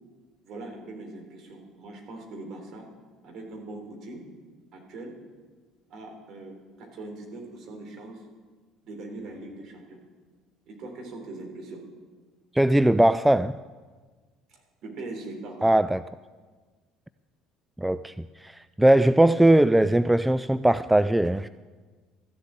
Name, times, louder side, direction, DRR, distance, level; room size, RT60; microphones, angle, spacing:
voice 1, 0.4-2.9 3.2-4.2 4.7-5.1 5.9-8.2 8.8-10.0 10.7-11.9 14.8-15.7, right 2 dB, 50° right, 1 dB, 3.5 m, -41 dB
voice 2, 12.5-13.6 15.6-16.0 17.8-21.5, right 1 dB, 5° right, 13 dB, 0.3 m, -20 dB
14.0 x 7.7 x 8.7 m, 1.4 s
figure-of-eight pair, 60°, 0 cm